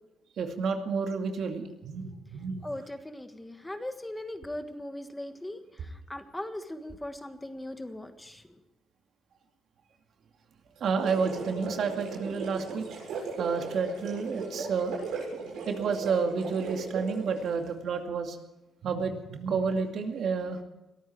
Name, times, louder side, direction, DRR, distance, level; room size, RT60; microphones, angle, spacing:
voice 1, 0.4-2.7 10.8-12.9 13.4-15.0 15.7-18.4 18.8-20.6, right 5 dB, 65° right, 4 dB, 2.4 m, -30 dB
voice 2, 2.6-5.6 6.1-8.4, left 1 dB, 10° left, 8 dB, 1.5 m, -39 dB
sound 1, 10.8-17.6, right 4 dB, 85° right, 7.1 m, -37 dB
22.5 x 13.5 x 4.7 m, 1.0 s
cardioid pair, 90°, 0 cm